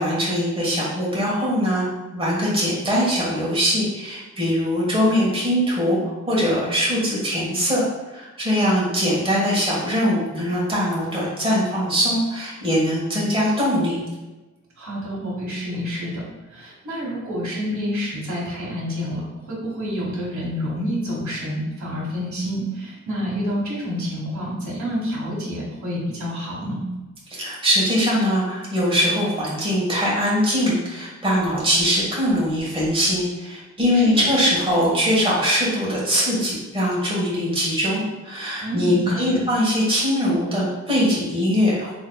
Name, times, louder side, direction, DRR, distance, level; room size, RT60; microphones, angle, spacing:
voice 1, 0.0-1.9 2.1-14.0 27.3-41.9, equal, 20° right, -7 dB, 1.2 m, -21 dB
voice 2, 14.8-16.2 16.5-26.8 33.9-34.3 38.6-39.4, equal, 80° right, -5 dB, 1.3 m, -28 dB
3.8 x 2.9 x 2.2 m, 1.1 s
wide cardioid pair, 120°, 29 cm